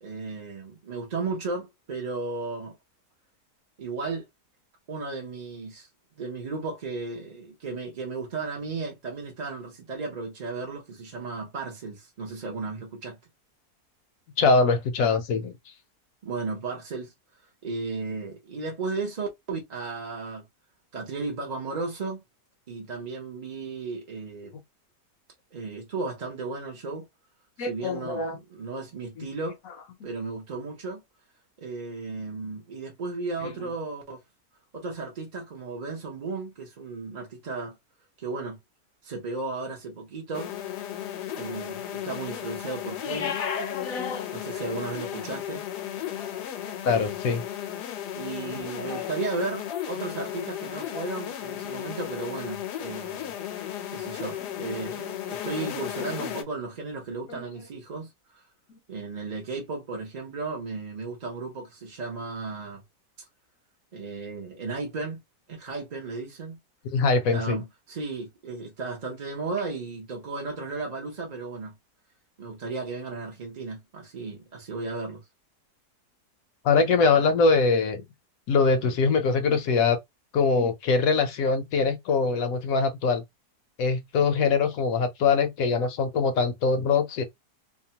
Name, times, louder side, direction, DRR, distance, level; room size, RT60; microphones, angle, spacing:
voice 1, 0.0-2.8 3.8-4.3 4.9-5.9 6.1-13.2 16.2-17.1 17.6-20.4 20.9-22.2 22.7-24.5 25.5-27.1 27.6-29.6 30.0-31.0 31.6-34.2 34.7-37.8 38.2-38.6 39.0-40.5 41.3-43.4 44.3-45.7 47.8-58.1 58.3-58.4 58.9-62.8 63.9-65.2 65.5-66.6 67.3-71.8 72.4-75.2, right 3 dB, 45° right, 0.5 m, -35 dB
voice 2, 14.4-15.5 27.6-28.4 29.2-29.3 43.0-44.7 46.1-47.4 48.8-49.1 50.9-51.0 53.2-53.3 57.3-57.4 58.7-58.8 66.9-67.6 76.6-78.0 78.5-80.0 80.3-83.2 83.8-87.2, left 4 dB, 70° left, 0.9 m, -24 dB
sound 1, 40.3-56.4, left 11 dB, 85° left, 1.2 m, -35 dB
2.8 x 2.1 x 2.8 m
omnidirectional pair, 1.7 m